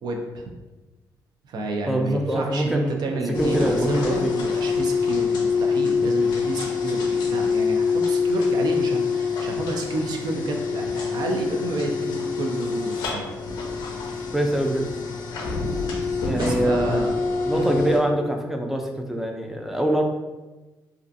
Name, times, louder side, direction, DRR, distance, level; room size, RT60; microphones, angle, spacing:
voice 1, 0.0-0.5 1.5-13.3 16.4-17.1 17.5-17.7, right 2 dB, 65° right, 2 dB, 0.4 m, -30 dB
voice 2, 1.9-4.3 14.3-14.9 16.3-17.0 17.4-20.0, right 1 dB, 5° right, 3 dB, 0.4 m, -24 dB
sound 1, 3.3-18.0, left 5 dB, 85° left, 0.5 m, -25 dB
2.4 x 2.3 x 2.5 m, 1.2 s
cardioid pair, 80°, 8 cm